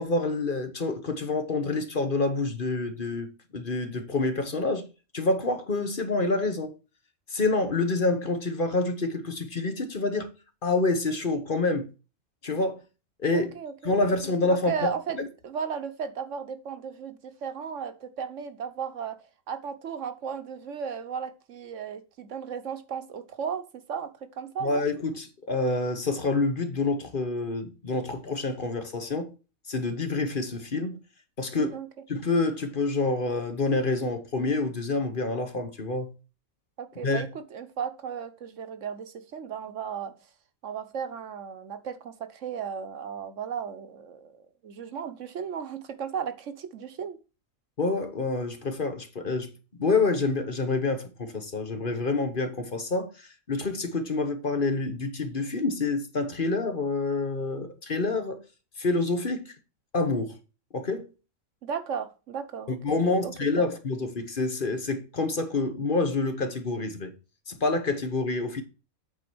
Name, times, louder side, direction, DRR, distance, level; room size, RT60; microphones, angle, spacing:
voice 1, 0.0-4.9 5.1-6.7 7.3-10.3 10.6-11.9 12.4-12.8 13.2-13.5 13.8-14.9 15.2-15.3 24.6-29.3 29.7-31.0 31.4-31.8 32.1-36.1 37.0-37.2 47.8-49.5 49.8-58.4 58.8-59.5 59.9-60.4 60.7-61.1 62.7-67.1 67.5-68.6, left 3 dB, 40° left, 1.2 m, -27 dB
voice 2, 13.3-14.1 14.5-15.2 15.4-19.2 19.5-24.8 31.6-31.9 36.8-40.1 40.6-47.2 61.6-63.7, right 7 dB, 65° right, 1.2 m, -35 dB
8.4 x 4.4 x 6.1 m
omnidirectional pair, 1.4 m